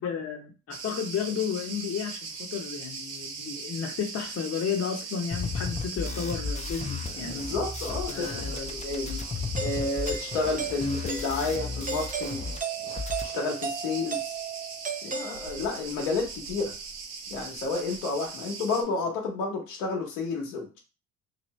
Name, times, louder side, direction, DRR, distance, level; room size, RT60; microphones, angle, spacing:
voice 1, 0.0-7.4 8.1-8.7, left 7 dB, 40° left, 2 dB, 0.9 m, -33 dB
Cricket, 0.7-18.8, right 5 dB, 75° right, 0.8 m, -40 dB
sound 1, 5.3-12.6 12.8-13.3, left 5 dB, 20° left, 0.6 m, -35 dB
voice 2, 7.2-9.2 9.6-12.4 13.2-14.4 15.0-16.8 17.3-20.8, left 3 dB, 85° left, 0 dB, 1.2 m, -31 dB
Doorbell, 9.6-15.9, right 6 dB, 20° right, 0.6 m, -36 dB
2.8 x 2.7 x 3.1 m, 0.31 s
hypercardioid pair, 65°, 37 cm